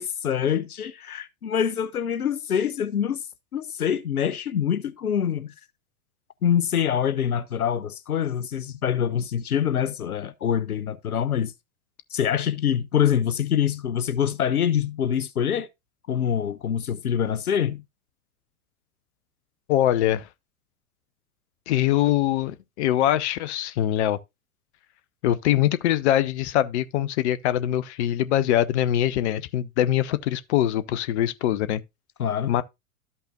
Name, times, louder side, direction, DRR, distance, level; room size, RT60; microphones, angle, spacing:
voice 1, 0.0-3.2 3.5-5.5 6.4-11.5 12.1-15.7 16.1-17.8 32.2-32.5, left 9 dB, 85° left, 0.7 m, -25 dB
voice 2, 19.7-20.3 21.7-24.2 25.2-31.8 32.5-32.6, left 12 dB, 50° left, 0.8 m, -23 dB
13.0 x 5.6 x 2.3 m
figure-of-eight pair, 95°, 43 cm